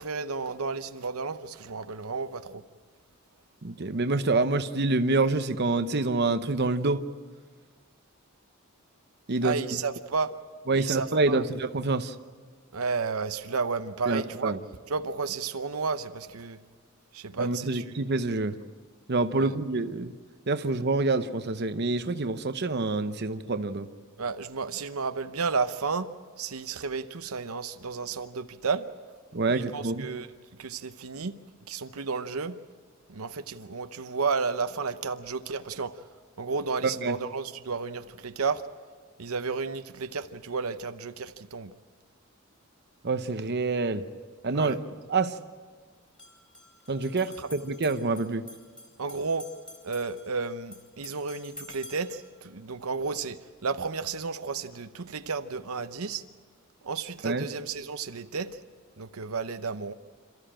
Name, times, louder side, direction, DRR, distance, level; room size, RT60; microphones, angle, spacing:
voice 1, 0.0-2.6 9.4-10.3 10.7-11.4 12.7-14.6 14.9-16.6 17.1-18.0 19.4-19.5 24.2-26.1 26.4-28.9 29.5-30.3 30.6-31.3 31.7-32.6 33.1-36.0 36.4-38.6 39.2-41.7 44.5-44.8 47.4-47.5 49.0-49.5 49.8-56.2 56.8-58.6 59.0-59.9, right 4 dB, 85° right, 10 dB, 0.8 m, -32 dB
voice 2, 3.6-7.0 9.3-9.6 10.7-12.1 14.1-14.6 17.4-18.5 19.1-20.1 20.5-23.9 29.3-30.1 37.0-37.2 43.0-44.0 44.4-44.8 45.1-45.3 46.9-48.4 57.2-57.4, right 3 dB, 50° right, 9 dB, 0.8 m, -27 dB
sound 1, 46.0-52.3, left 1 dB, 5° left, 3.5 m, -48 dB
27.5 x 14.0 x 8.9 m, 1.5 s
head